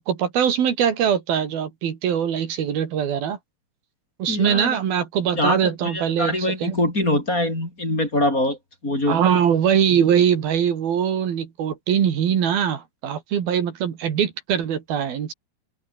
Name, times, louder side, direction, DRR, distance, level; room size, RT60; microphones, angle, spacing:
voice 1, 0.0-3.4 4.2-6.8 9.1-15.3, right 8 dB, 75° right, 4.4 m, -22 dB
voice 2, 4.3-4.8 5.4-8.6 8.8-9.2, left 1 dB, 20° left, 8.0 m, -23 dB
omnidirectional pair, 4.3 m